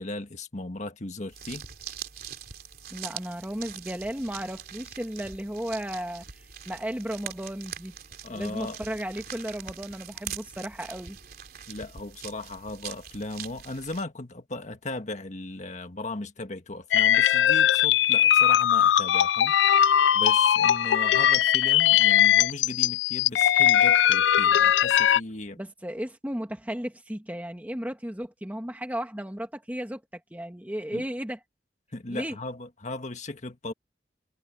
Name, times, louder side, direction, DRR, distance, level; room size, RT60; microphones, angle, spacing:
voice 1, 0.0-1.6 8.2-8.8 11.7-19.5 20.1-25.6 30.9-31.0 31.9-33.7, left 2 dB, 40° left, 1.6 m, -37 dB
sound 1, 1.3-14.0, right 8 dB, 55° right, 3.2 m, -42 dB
voice 2, 2.9-7.9 8.3-11.2 25.6-31.4 32.1-32.4, equal, 10° right, 1.6 m, -34 dB
sound 2, 16.9-25.2, left 10 dB, 80° left, 0.3 m, -20 dB
head